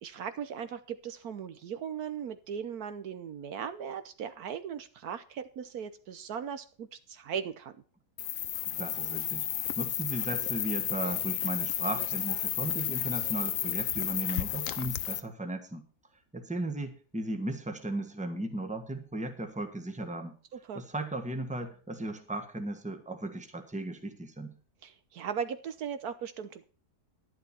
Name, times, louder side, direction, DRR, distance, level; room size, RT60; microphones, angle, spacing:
voice 1, 0.0-7.7 20.5-20.8 24.8-26.7, right 7 dB, 70° right, 11 dB, 1.4 m, -38 dB
sound 1, 8.2-15.2, left 11 dB, 65° left, 1.0 m, -32 dB
voice 2, 8.8-9.5 9.8-15.8 16.3-20.4 20.7-24.5, right 2 dB, 5° right, 6 dB, 1.4 m, -36 dB
11.5 x 11.0 x 4.3 m, 0.38 s
omnidirectional pair, 1.7 m